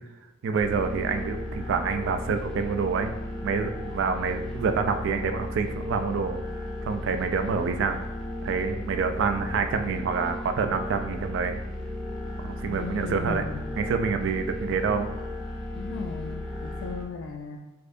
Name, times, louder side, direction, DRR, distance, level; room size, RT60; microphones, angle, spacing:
voice 1, 0.4-3.1 3.4-6.4 6.8-8.0 8.4-11.6 12.4-13.4 13.8-15.1, right 5 dB, 60° right, 7 dB, 0.3 m, -27 dB
sound 1, 0.6-17.0, left 1 dB, ahead, 0.5 m, -35 dB
voice 2, 12.7-13.6 15.8-17.6, left 4 dB, 70° left, 1 dB, 0.3 m, -36 dB
4.1 x 2.7 x 2.5 m, 1.1 s
head